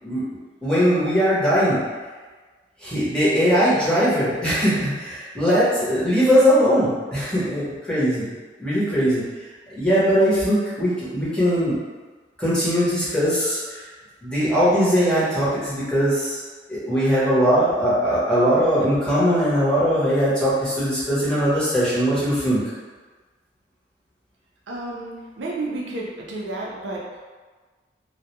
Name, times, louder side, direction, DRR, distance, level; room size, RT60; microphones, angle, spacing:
voice 1, 0.0-1.8 2.8-8.3 8.6-9.2 9.7-11.8 12.4-13.8 14.2-16.4 16.7-22.6, equal, 5° left, -10 dB, 0.8 m, -20 dB
voice 2, 24.7-27.2, right 2 dB, 85° right, -3 dB, 0.5 m, -31 dB
2.2 x 2.1 x 2.9 m, 1.4 s
head